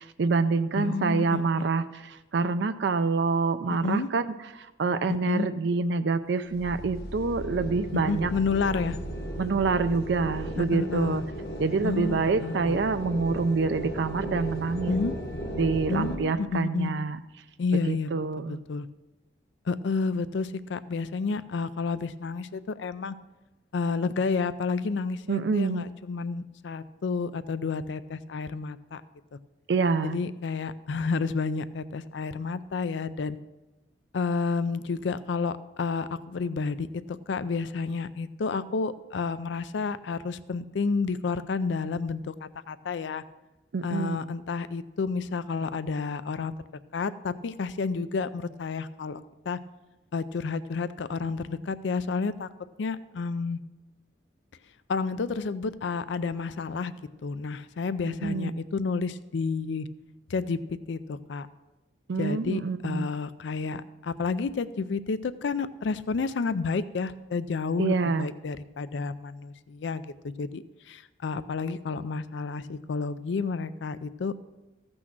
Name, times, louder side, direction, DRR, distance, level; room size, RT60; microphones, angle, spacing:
voice 1, 0.0-8.3 9.4-11.2 11.6-14.9 15.6-17.2 17.9-18.6 25.3-25.9 29.7-30.2 43.7-44.3 58.2-58.6 62.1-63.1 67.8-68.3, right 4 dB, 70° right, 10 dB, 0.4 m, -27 dB
voice 2, 0.8-1.7 3.8-4.1 5.1-5.5 8.1-9.0 10.7-11.2 11.8-12.6 14.9-15.1 15.9-16.9 17.6-18.1 18.5-18.9 19.7-23.2 23.7-29.0 30.0-33.4 34.1-43.2 43.8-46.5 46.9-49.6 50.1-52.5 52.8-53.6 54.9-57.0 57.2-59.9 60.3-60.6 60.9-61.5 62.2-74.4, left 4 dB, 75° left, 14 dB, 0.4 m, -30 dB
sound 1, 6.5-16.2, equal, 55° left, 1.2 m, -36 dB
15.0 x 6.2 x 6.0 m, 1.1 s
head